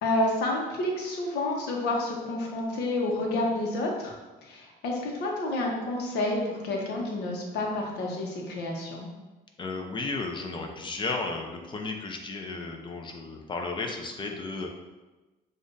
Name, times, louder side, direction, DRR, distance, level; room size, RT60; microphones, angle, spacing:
voice 1, 0.0-4.1 4.4-9.1, left 2 dB, 75° left, 0 dB, 1.0 m, -29 dB
voice 2, 9.6-14.7, left 3 dB, 30° left, 3 dB, 0.6 m, -34 dB
6.8 x 2.6 x 2.6 m, 1.1 s
cardioid pair, 110°, 17 cm